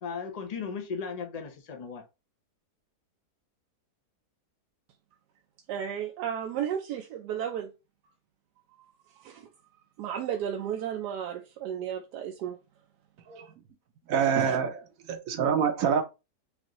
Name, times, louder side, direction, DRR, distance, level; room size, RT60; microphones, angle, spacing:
voice 1, 0.0-2.0, left 5 dB, 50° left, 0.4 m, -36 dB
voice 2, 5.7-7.7 9.1-9.5 10.0-12.6 14.4-14.6, right 9 dB, 85° right, 1.1 m, -33 dB
voice 3, 14.1-14.7 15.1-16.0, right 7 dB, 70° right, 0.9 m, -25 dB
5.2 x 2.5 x 2.9 m
omnidirectional pair, 1.7 m